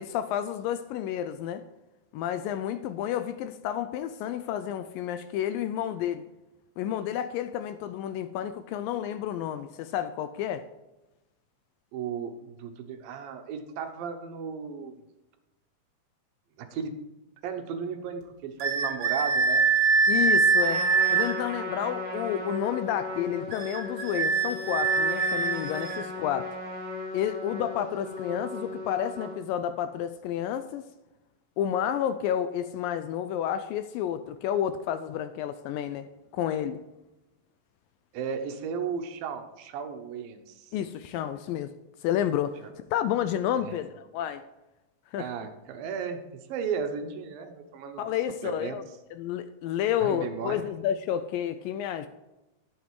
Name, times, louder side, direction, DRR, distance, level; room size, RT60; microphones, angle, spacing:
voice 1, 0.0-1.6 2.1-6.2 6.8-10.6 20.1-20.8 21.1-26.5 27.1-30.9 31.6-36.1 36.3-36.8 40.7-41.7 42.0-42.5 42.9-44.4 45.1-45.3 48.0-48.8 49.1-52.1, left 10 dB, 80° left, 11 dB, 2.1 m, -30 dB
voice 2, 11.9-14.9 16.6-17.0 17.4-19.7 38.1-40.7 42.6-42.7 43.6-43.8 45.2-46.2 46.5-48.1 48.4-48.8 50.0-50.6, right 6 dB, 75° right, 6 dB, 2.6 m, -35 dB
sound 1, 18.6-21.4 23.5-26.1, right 4 dB, 45° right, 1.4 m, -24 dB
Trumpet, 20.6-29.4, left 2 dB, 25° right, 4.3 m, -37 dB
11.5 x 7.4 x 4.7 m, 1.0 s
omnidirectional pair, 4.3 m